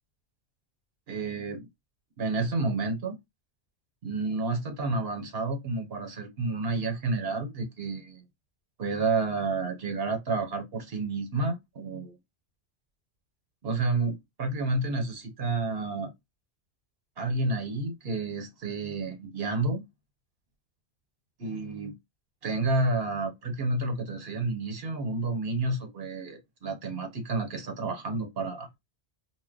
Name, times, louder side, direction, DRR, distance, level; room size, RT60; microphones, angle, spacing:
voice 1, 1.1-1.7 2.2-3.2 4.0-8.2 8.8-12.2 13.6-16.1 17.2-19.8 21.4-21.9 22.4-28.7, right 3 dB, 60° right, 1.1 m, -30 dB
2.2 x 2.2 x 3.7 m
omnidirectional pair, 1.2 m